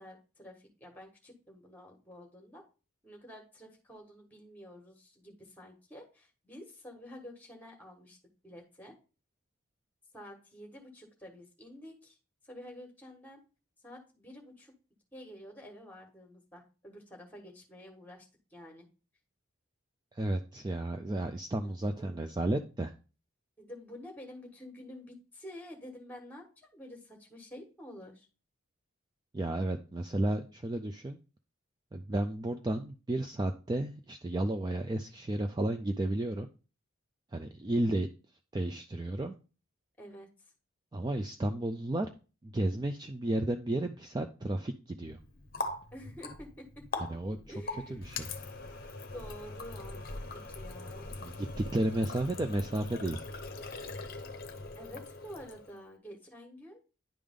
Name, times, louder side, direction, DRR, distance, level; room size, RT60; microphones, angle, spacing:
voice 1, 0.0-2.6 3.0-8.2 8.4-8.9 10.1-12.2 12.4-13.4 13.8-14.7 15.1-18.9 21.6-22.3 23.6-28.3 40.0-40.5 45.9-47.0 47.5-48.1 49.1-50.0 50.3-51.1 54.8-56.8, equal, 10° left, 2 dB, 1.4 m, -49 dB
voice 2, 20.1-22.9 29.3-31.2 31.9-36.5 37.3-38.1 38.5-39.4 40.9-42.1 42.4-45.2 47.0-47.4 47.9-48.3 51.2-53.2, right 1 dB, 20° right, 6 dB, 0.3 m, -32 dB
Water tap faucet, 45.0-55.8, left 3 dB, 45° left, 0.7 m, -42 dB
10.0 x 3.4 x 3.6 m, 0.34 s
head